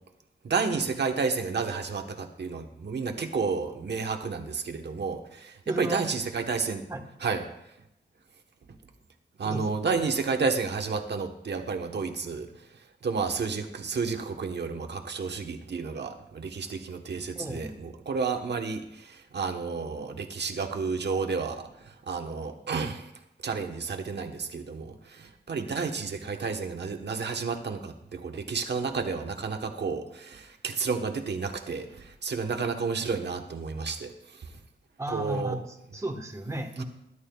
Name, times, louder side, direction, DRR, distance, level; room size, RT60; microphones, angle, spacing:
voice 1, 0.4-6.9 7.2-7.4 9.4-12.5 13.0-23.1 23.4-34.5 35.1-35.6 36.8-36.9, right 4 dB, 65° right, 5 dB, 1.2 m, -31 dB
voice 2, 5.6-6.1 6.9-7.1 9.4-9.7 17.3-17.9 35.0-36.8, right 1 dB, 15° right, 4 dB, 1.3 m, -34 dB
20.5 x 11.0 x 2.3 m, 0.84 s
wide cardioid pair, 125°, 19 cm